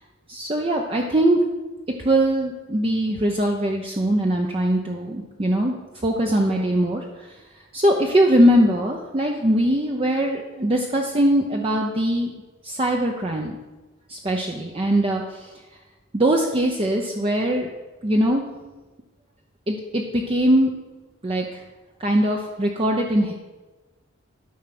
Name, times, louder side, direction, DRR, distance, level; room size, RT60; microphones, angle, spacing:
voice 1, 0.3-1.4 2.0-5.7 6.0-7.0 7.7-12.3 12.6-13.6 14.1-15.5 16.1-17.7 18.0-18.4 19.7-20.7 21.2-21.6 22.0-23.3, right 1 dB, 25° right, 1 dB, 0.7 m, -21 dB
12.0 x 5.0 x 5.9 m, 1.2 s
head